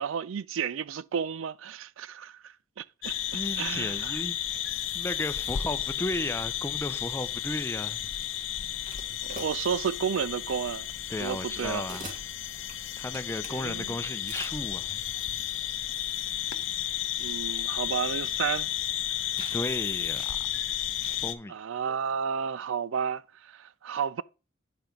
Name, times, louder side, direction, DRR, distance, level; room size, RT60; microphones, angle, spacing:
voice 1, 0.0-3.1 3.6-4.1 9.2-10.9 11.2-11.9 13.5-14.0 17.2-18.7 21.5-24.2, right 7 dB, 85° right, 0.4 m, -32 dB
sound 1, 3.0-21.3, left 11 dB, 70° left, 0.7 m, -33 dB
voice 2, 3.3-4.6 4.9-8.1 11.1-12.1 13.0-15.0 19.5-20.4 21.2-21.5, left 1 dB, 15° left, 0.6 m, -34 dB
sound 2, 8.8-10.0 10.5-10.7 11.5-13.6 14.2-14.9 16.2-16.3 16.5-16.6 16.8-16.9 17.7-18.9 19.3-19.8 20.0-20.3 20.9-21.2, right 2 dB, 40° right, 2.2 m, -45 dB
9.2 x 4.8 x 5.2 m
head